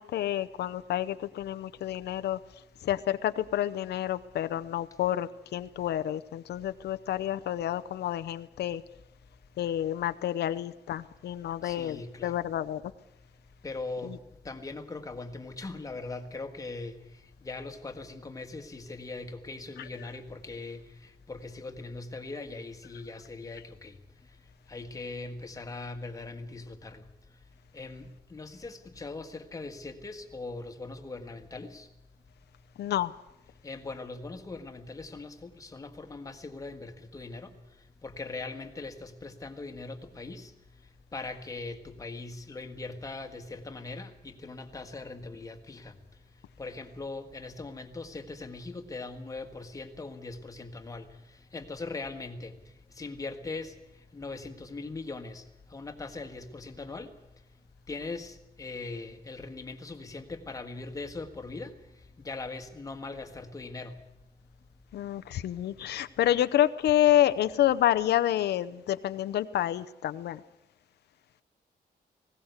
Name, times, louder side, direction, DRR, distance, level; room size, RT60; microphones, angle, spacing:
voice 1, 0.0-2.4 2.8-8.8 9.6-12.8 32.8-33.1 64.9-70.4, left 12 dB, 85° left, 12 dB, 0.8 m, -28 dB
voice 2, 11.6-12.4 13.6-14.2 14.5-17.0 17.4-24.0 24.7-27.0 27.7-31.9 33.6-37.5 38.0-40.5 41.1-45.9 46.6-51.1 51.5-52.5 53.0-53.7 54.1-55.4 55.7-57.1 57.9-61.7 62.2-64.0, left 3 dB, 20° left, 6 dB, 1.7 m, -40 dB
20.0 x 17.0 x 8.1 m, 0.92 s
wide cardioid pair, 165°, 17 cm